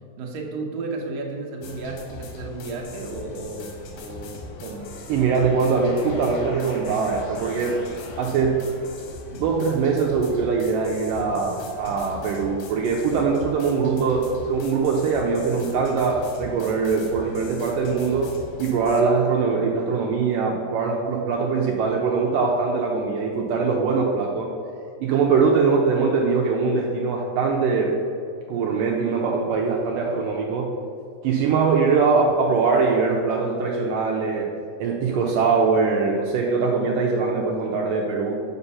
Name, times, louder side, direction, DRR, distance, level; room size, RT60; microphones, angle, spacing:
voice 1, 0.2-4.9, right 3 dB, 65° right, -1 dB, 1.7 m, -33 dB
sound 1, 1.6-19.0, left 2 dB, 75° left, 2.3 m, -40 dB
sound 2, 4.4-9.3, left 1 dB, 60° left, 1.7 m, -41 dB
voice 2, 5.1-7.8 8.2-8.6 9.3-24.5 25.0-27.9 28.5-30.7 31.2-34.5 34.8-38.5, right 4 dB, 80° right, -1 dB, 2.0 m, -22 dB
6.8 x 5.2 x 5.5 m, 2.5 s
omnidirectional pair, 4.2 m